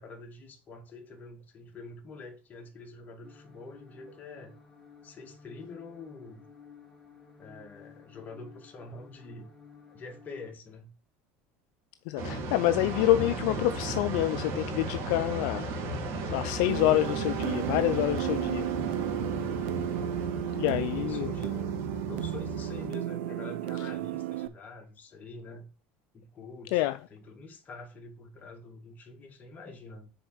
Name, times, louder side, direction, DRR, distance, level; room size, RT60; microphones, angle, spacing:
voice 1, 0.0-4.5 5.0-6.5 7.4-9.5 9.9-10.9 15.1-16.1 20.9-21.8 22.0-25.7 26.1-30.1, left 3 dB, 30° left, 2.2 m, -46 dB
sound 1, 3.2-10.5, left 6 dB, ahead, 3.0 m, -54 dB
voice 2, 12.1-15.6 16.3-18.7 20.6-21.3 26.7-27.0, left 15 dB, 70° left, 0.4 m, -27 dB
sound 2, 12.2-22.9, right 2 dB, 55° right, 2.5 m, -35 dB
sound 3, 16.7-24.5, right 13 dB, 85° right, 0.7 m, -33 dB
6.7 x 4.4 x 6.4 m
supercardioid pair, 115°, 6 cm